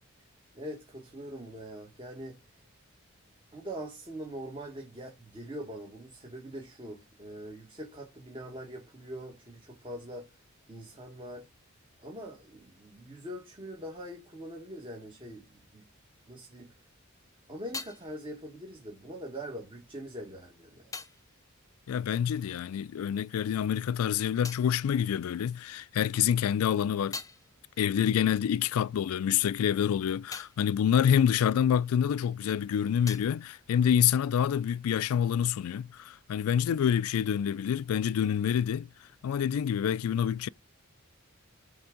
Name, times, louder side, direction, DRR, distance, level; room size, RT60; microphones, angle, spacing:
voice 1, 0.5-2.4 3.5-10.3 10.7-11.5 12.0-15.9 16.3-16.7 17.5-20.9, equal, 25° right, 1.5 m, -43 dB
sound 1, 16.9-22.9 23.2-25.9 26.3-32.3 32.6-34.6, left 4 dB, 15° left, 0.5 m, -48 dB
voice 2, 21.9-27.2 27.8-38.9 39.2-40.5, left 9 dB, 90° left, 0.3 m, -27 dB
7.0 x 3.5 x 5.0 m
head